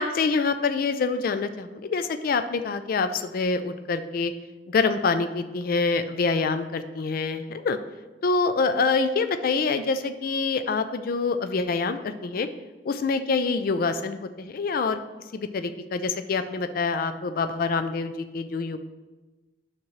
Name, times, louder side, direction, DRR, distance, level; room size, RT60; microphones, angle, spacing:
voice 1, 0.0-4.3 4.7-7.8 8.2-12.5 12.9-15.0 15.3-18.8, left 4 dB, 55° left, 10 dB, 0.4 m, -26 dB
9.6 x 6.0 x 3.2 m, 1.2 s
head